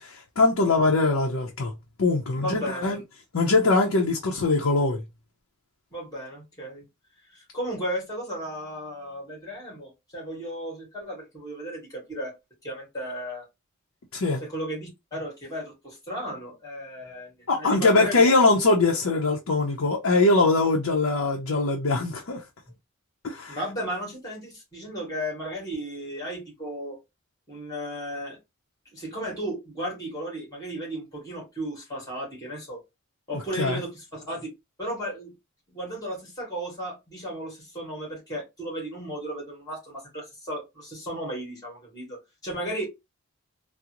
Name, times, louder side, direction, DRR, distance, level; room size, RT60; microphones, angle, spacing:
voice 1, 0.0-1.7 2.0-3.0 3.3-5.0 14.1-14.4 17.5-22.4 23.2-23.6 33.3-33.8, left 3 dB, 75° left, 0.6 m, -22 dB
voice 2, 2.4-3.0 5.9-6.8 7.3-12.3 12.6-13.4 14.5-18.4 23.5-27.0 27.5-28.4 28.9-32.8 33.3-34.5 34.8-35.3 35.7-42.9, equal, 15° left, 1.8 m, -35 dB
3.7 x 2.0 x 2.9 m
head